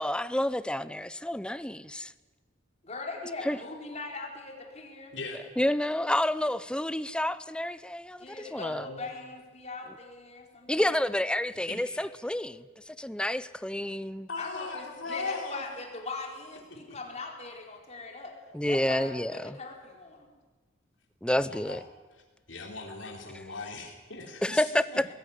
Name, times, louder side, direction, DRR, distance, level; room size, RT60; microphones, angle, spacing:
voice 1, 0.0-2.1 3.5-3.6 5.6-8.9 10.7-12.6 13.0-14.3 18.5-19.6 21.2-21.8 24.4-25.0, left 1 dB, 5° left, 15 dB, 0.6 m, -29 dB
voice 2, 2.8-5.1 8.2-11.0 12.4-12.6 14.4-18.3 18.6-20.3, left 3 dB, 35° left, 1 dB, 4.3 m, -40 dB
voice 3, 5.1-5.4 8.7-9.0 11.6-11.7 12.0-12.1 14.3-15.6 16.9-17.0 21.4-21.8 22.5-24.7, left 3 dB, 70° left, 1 dB, 3.9 m, -38 dB
21.5 x 15.5 x 9.8 m, 1.3 s
head